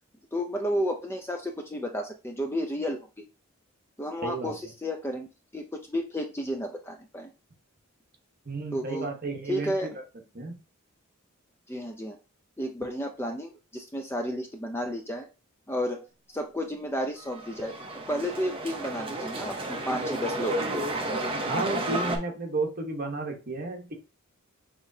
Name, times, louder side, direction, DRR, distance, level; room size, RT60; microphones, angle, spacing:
voice 1, 0.3-3.2 4.0-5.3 5.5-7.3 8.7-9.1 9.5-9.9 11.7-12.2 12.6-15.3 15.7-17.7 18.1-20.8, equal, 10° left, 3 dB, 0.4 m, -32 dB
voice 2, 4.2-4.5 8.5-10.0 10.3-10.6 21.5-23.9, right 3 dB, 45° right, 3 dB, 1.0 m, -32 dB
sound 1, 17.2-22.2, right 1 dB, 25° right, 0.8 m, -32 dB
6.0 x 3.0 x 2.7 m, 0.31 s
head